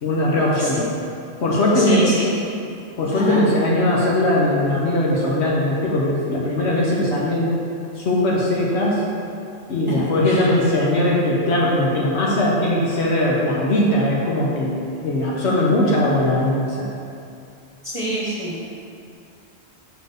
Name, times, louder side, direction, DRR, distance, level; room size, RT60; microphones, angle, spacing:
voice 1, 0.0-0.8 1.4-2.1 3.0-7.6 7.9-9.0 9.7-14.8 15.0-16.8, left 1 dB, 80° left, -4 dB, 1.3 m, -19 dB
voice 2, 1.7-2.3 3.1-3.4 9.9-10.0 10.2-10.5 17.8-18.7, right 1 dB, 30° right, -6 dB, 1.2 m, -27 dB
7.0 x 4.2 x 6.6 m, 2.5 s
omnidirectional pair, 1.1 m